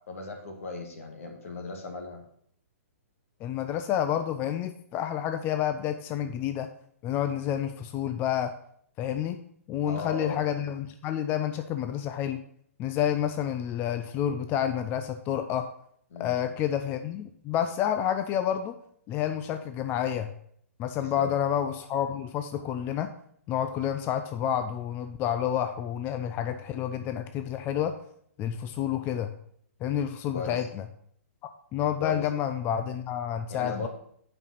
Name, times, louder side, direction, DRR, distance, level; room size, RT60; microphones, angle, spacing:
voice 1, 0.1-2.2 9.9-10.4 16.1-16.5 21.0-21.3 30.3-30.7 32.0-32.3 33.5-33.9, left 4 dB, 70° left, 2 dB, 1.9 m, -37 dB
voice 2, 3.4-6.7 7.0-8.5 9.0-9.4 9.7-12.4 12.8-15.7 16.2-18.8 19.1-20.3 20.8-23.1 23.5-28.0 28.4-29.3 29.8-30.9 31.4-33.9, left 10 dB, 25° left, 8 dB, 0.4 m, -29 dB
7.3 x 5.4 x 5.5 m, 0.66 s
hypercardioid pair, 135°, 8 cm